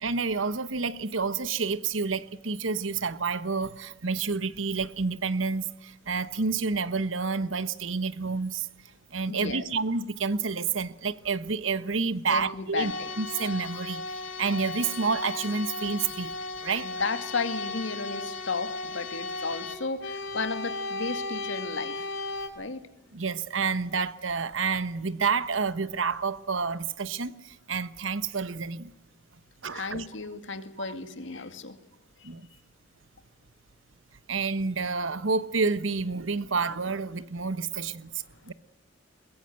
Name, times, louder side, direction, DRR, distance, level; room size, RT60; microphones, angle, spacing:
voice 1, 0.0-8.7 9.1-12.9 13.2-16.3 16.6-16.9 23.1-28.9 29.6-30.1 30.8-30.9 32.2-32.5 34.3-38.5, right 4 dB, 90° right, 1.1 m, -29 dB
voice 2, 9.3-9.6 12.3-13.1 16.8-22.1 22.6-22.8 29.7-31.8 32.2-32.3, left 4 dB, 70° left, 2.2 m, -33 dB
sound 1, 12.8-22.5, left 3 dB, 90° left, 3.7 m, -35 dB
22.5 x 21.5 x 7.9 m
head